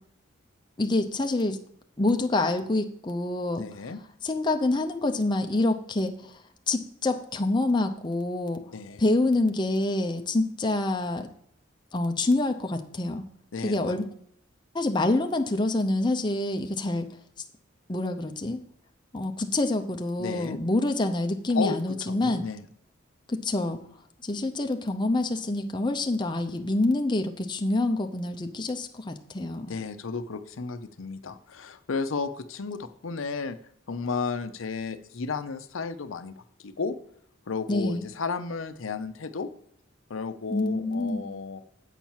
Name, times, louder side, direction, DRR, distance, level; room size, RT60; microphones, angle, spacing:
voice 1, 0.8-1.6 2.0-3.6 4.2-6.4 6.7-8.6 9.0-11.3 11.9-13.2 13.6-14.1 14.7-17.1 17.9-18.6 19.1-22.4 23.3-23.8 24.2-29.7 37.7-38.1 40.5-41.3, left 2 dB, 20° left, 5 dB, 0.6 m, -26 dB
voice 2, 3.6-4.0 8.7-9.0 13.5-14.0 20.2-20.6 21.5-22.6 29.7-33.6 33.9-37.0 37.5-39.5 40.1-41.6, left 4 dB, 80° left, 10 dB, 0.7 m, -33 dB
8.1 x 4.5 x 7.2 m, 0.65 s
head